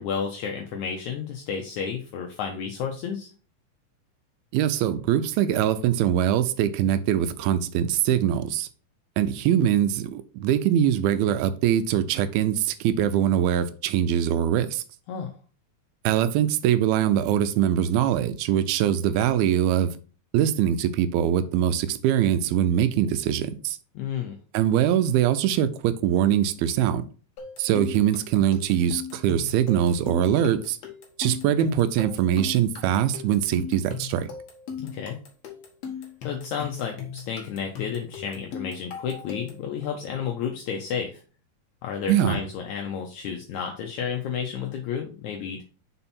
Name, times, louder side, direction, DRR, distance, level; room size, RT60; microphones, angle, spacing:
voice 1, 0.0-3.3 15.1-15.3 23.9-24.3 34.8-35.2 36.2-41.2 41.8-45.6, left 7 dB, 85° left, 1.6 m, -31 dB
voice 2, 4.5-8.7 9.2-14.8 16.0-20.0 20.3-23.8 24.5-27.0 27.6-30.8 31.2-34.3 42.1-42.4, right 10 dB, 85° right, 2.5 m, -23 dB
sound 1, 27.4-39.7, left 7 dB, 60° left, 2.0 m, -38 dB
5.6 x 4.4 x 4.2 m
omnidirectional pair, 4.3 m